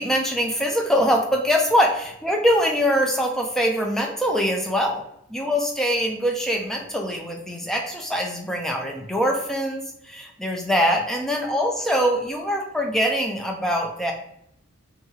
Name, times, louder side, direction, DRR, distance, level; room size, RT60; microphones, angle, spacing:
voice 1, 0.0-5.0 5.3-14.1, equal, ahead, 1 dB, 0.3 m, -23 dB
2.8 x 2.3 x 2.7 m, 0.77 s
head